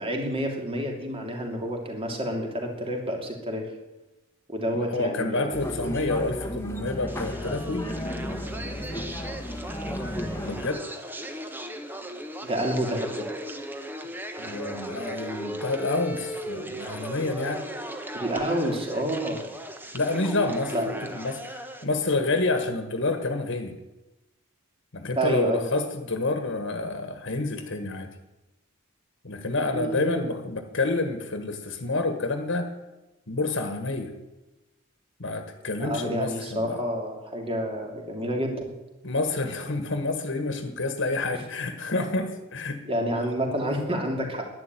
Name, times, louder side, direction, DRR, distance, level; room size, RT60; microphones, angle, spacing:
voice 1, 0.0-3.7 4.5-5.6 12.4-13.3 18.1-19.4 20.7-21.1 25.1-25.6 29.7-30.2 35.8-38.6 42.8-44.5, right 1 dB, 25° right, 1 dB, 2.9 m, -29 dB
voice 2, 4.7-7.9 10.4-10.8 14.4-17.6 19.9-23.7 24.9-28.1 29.2-32.7 33.3-34.1 35.2-36.8 39.0-42.8, left 2 dB, 65° left, 7 dB, 1.6 m, -28 dB
sound 1, 5.5-10.7, left 1 dB, 10° left, 1.4 m, -34 dB
sound 2, 7.1-21.8, equal, 10° right, 1.2 m, -37 dB
11.5 x 11.0 x 9.2 m, 1.0 s
head